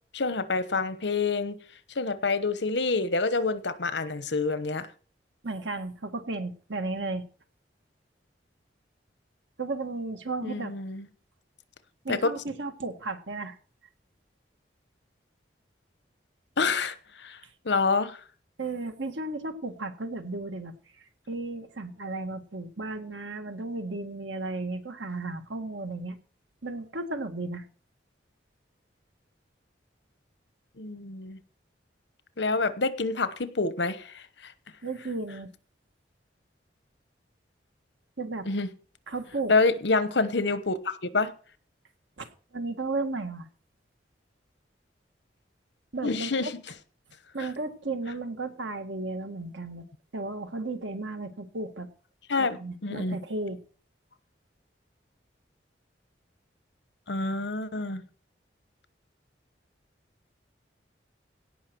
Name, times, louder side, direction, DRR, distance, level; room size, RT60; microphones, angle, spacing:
voice 1, 0.1-1.6 1.9-4.9 10.4-11.1 12.1-12.2 16.6-17.4 17.6-18.2 30.8-31.4 32.4-34.5 38.5-38.7 39.5-41.3 46.0-46.5 47.4-47.5 52.3-53.2 57.1-58.0, left 3 dB, 75° left, 13 dB, 1.1 m, -27 dB
voice 2, 5.4-7.3 9.6-10.7 12.0-13.5 18.6-20.7 21.3-26.2 26.6-27.7 34.8-35.5 38.2-38.5 39.1-39.5 42.2-43.5 45.9-46.5 47.3-49.8 50.1-51.9 52.4-53.6, right 3 dB, 90° right, 7 dB, 1.8 m, -34 dB
17.0 x 5.8 x 6.1 m, 0.42 s
head